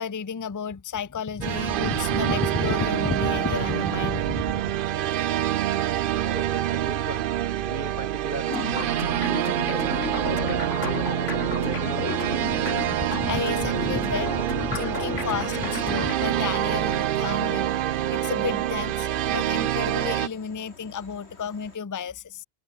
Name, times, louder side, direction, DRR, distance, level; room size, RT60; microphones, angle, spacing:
voice 1, 0.0-4.6 13.2-17.7 18.1-22.4, left 6 dB, 25° left, 0.4 m, -32 dB
sound 1, 1.4-20.3, right 12 dB, 60° right, 0.6 m, -26 dB
voice 2, 6.1-7.3 7.6-9.6 10.3-11.2 11.6-12.5, right 3 dB, 45° right, 2.3 m, -36 dB
sound 2, 8.5-16.2, left 5 dB, 85° left, 2.3 m, -33 dB
sound 3, 15.4-21.8, left 3 dB, 60° left, 3.7 m, -50 dB
omnidirectional pair, 1.2 m